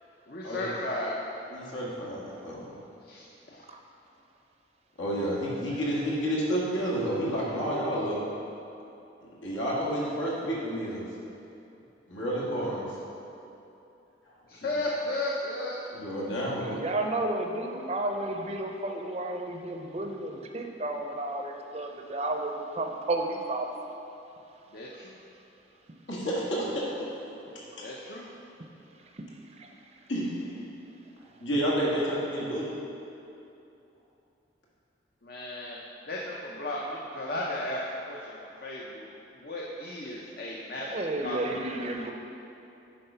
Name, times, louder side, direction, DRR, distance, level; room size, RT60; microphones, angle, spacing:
voice 1, 0.3-1.2 3.1-3.6 14.5-15.8 24.7-25.2 27.8-28.3 35.2-35.8 36.1-37.8 38.1-39.1 39.4-41.0 41.2-41.4, left 1 dB, 50° left, -3 dB, 0.6 m, -34 dB
voice 2, 1.5-2.7 5.0-8.2 9.4-11.0 12.1-13.0 14.3-14.7 15.9-16.8 26.1-26.8 30.1-30.5 31.4-32.7, equal, 85° left, -6 dB, 1.9 m, -30 dB
voice 3, 16.6-23.7 29.2-29.3 29.6-29.7 40.8-42.1, right 2 dB, 35° right, 3 dB, 0.6 m, -32 dB
9.5 x 3.8 x 5.6 m, 2.8 s
head